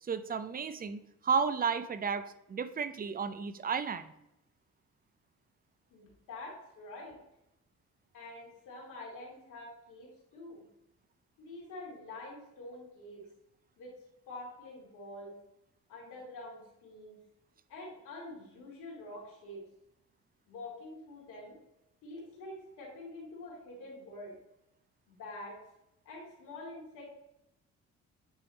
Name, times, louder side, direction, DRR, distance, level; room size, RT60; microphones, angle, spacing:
voice 1, 0.0-4.1, right 6 dB, 30° right, 12 dB, 0.5 m, -33 dB
voice 2, 5.9-7.2 8.1-10.6 11.4-13.2 13.8-13.9 14.3-15.3 15.9-17.2 17.7-19.6 20.5-21.6 22.0-24.4 25.1-25.6 26.0-27.1, left 2 dB, 85° left, -3 dB, 2.6 m, -46 dB
9.0 x 3.4 x 4.0 m, 0.85 s
cardioid pair, 90°, 30 cm